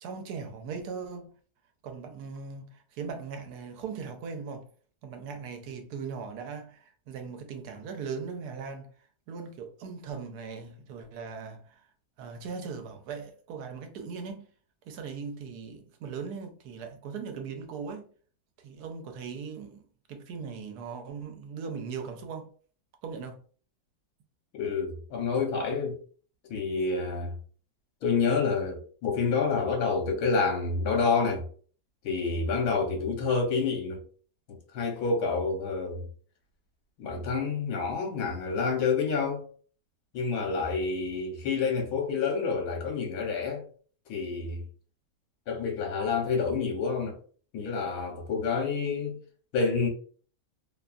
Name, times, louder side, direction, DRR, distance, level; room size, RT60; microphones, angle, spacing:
voice 1, 0.0-1.3 1.8-4.7 5.0-8.9 9.3-11.8 12.2-14.5 14.9-18.1 18.6-19.8 20.1-22.5 23.0-23.4, right 5 dB, 75° right, 1.1 m, -39 dB
voice 2, 24.5-26.0 26.5-27.4 28.0-31.4 32.0-34.0 34.7-36.1 37.0-39.4 40.1-43.6 44.1-44.7 45.5-47.2 47.5-49.2 49.5-49.9, left 4 dB, 70° left, 1.2 m, -28 dB
2.9 x 2.2 x 2.4 m
omnidirectional pair, 1.8 m